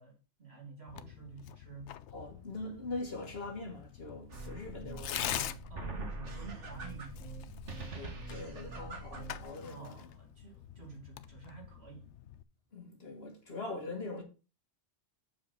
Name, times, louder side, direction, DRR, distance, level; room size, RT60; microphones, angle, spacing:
voice 1, 0.0-2.0 5.7-7.4 9.6-12.1, right 5 dB, 65° right, 2.8 m, -50 dB
Tearing, 0.9-12.4, left 11 dB, 85° left, 0.9 m, -45 dB
voice 2, 2.1-5.3 7.8-10.1 12.7-14.2, left 2 dB, 60° left, 1.7 m, -42 dB
sound 1, 4.3-9.5, right 2 dB, 85° right, 2.0 m, -43 dB
7.4 x 5.0 x 5.6 m
omnidirectional pair, 1.2 m